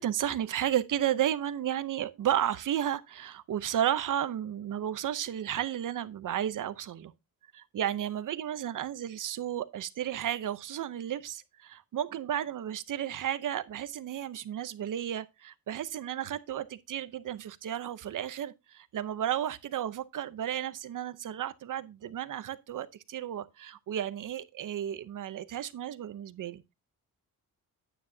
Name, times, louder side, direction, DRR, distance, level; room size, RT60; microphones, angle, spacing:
voice 1, 0.0-7.1 7.5-26.7, right 10 dB, 60° right, 0.8 m, -33 dB
9.8 x 9.2 x 2.7 m
wide cardioid pair, 175°, 36 cm